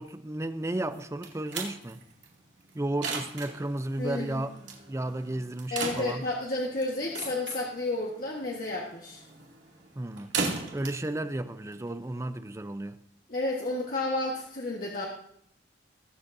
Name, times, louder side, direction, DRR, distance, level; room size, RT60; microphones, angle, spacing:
voice 1, 0.0-2.0 2.7-4.5 4.9-6.3 10.0-10.3 10.7-13.0, right 1 dB, 15° right, 0.5 m, -33 dB
sound 1, 0.9-12.4, right 4 dB, 80° right, 2.5 m, -38 dB
voice 2, 4.0-4.4 5.7-9.2 13.3-15.1, left 2 dB, 50° left, 1.4 m, -31 dB
22.0 x 7.9 x 2.7 m
head